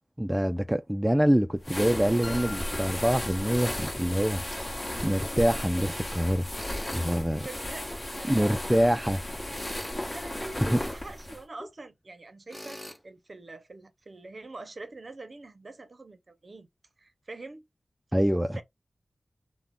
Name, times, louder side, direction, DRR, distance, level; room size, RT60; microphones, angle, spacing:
voice 1, 0.2-4.4 5.0-6.4 6.9-7.5 8.3-9.2 10.6-10.8 18.1-18.6, equal, 10° right, 0.3 m, -25 dB
sound 1, 1.6-11.4, left 1 dB, 35° left, 1.1 m, -35 dB
sound 2, 2.2-4.2, left 2 dB, 50° left, 0.8 m, -45 dB
Tools, 3.5-4.0 6.5-7.1 9.5-10.0 12.5-13.0, equal, 10° left, 1.0 m, -42 dB
voice 2, 7.3-9.2 10.1-16.7 17.0-17.6 18.5-18.6, right 2 dB, 55° right, 0.6 m, -45 dB
2.3 x 2.1 x 3.5 m
wide cardioid pair, 55°, 0 cm